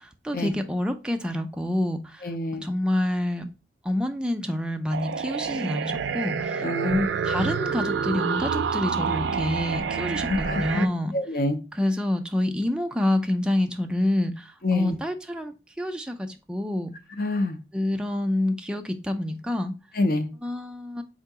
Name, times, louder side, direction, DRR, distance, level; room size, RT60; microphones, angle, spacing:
voice 1, 0.0-3.5 3.8-11.1 11.7-16.9 17.7-19.7 20.4-21.0, left 1 dB, 5° right, 0.3 m, -27 dB
voice 2, 2.2-2.7 6.6-7.0 10.3-10.9 11.1-11.6 14.6-15.0 17.2-17.6 19.9-20.3, left 2 dB, 50° left, 0.5 m, -26 dB
sound 1, 4.9-10.9, right 6 dB, 80° right, 0.4 m, -28 dB
3.7 x 2.7 x 4.7 m
head